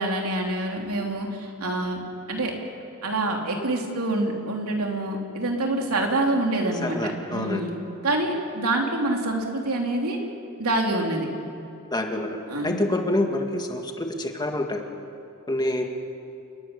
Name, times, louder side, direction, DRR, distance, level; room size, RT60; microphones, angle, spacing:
voice 1, 0.0-2.0 2.3-2.5 3.0-7.7 8.0-10.2 10.6-11.3 12.5-12.8, right 2 dB, 75° right, 1 dB, 3.4 m, -26 dB
voice 2, 6.8-7.6 11.9-12.4 12.6-14.8 15.5-15.8, left 1 dB, 20° left, 3 dB, 2.0 m, -27 dB
29.0 x 12.0 x 9.9 m, 2.6 s
head